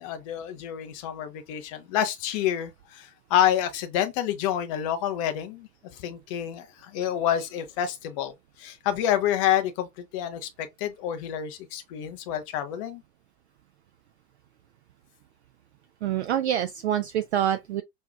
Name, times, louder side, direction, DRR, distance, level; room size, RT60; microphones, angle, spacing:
voice 1, 0.0-8.3 8.6-13.0, left 10 dB, 25° left, 0.4 m, -28 dB
voice 2, 16.0-17.8, right 10 dB, 45° right, 0.4 m, -26 dB
6.1 x 2.3 x 2.2 m
figure-of-eight pair, 95°, 49 cm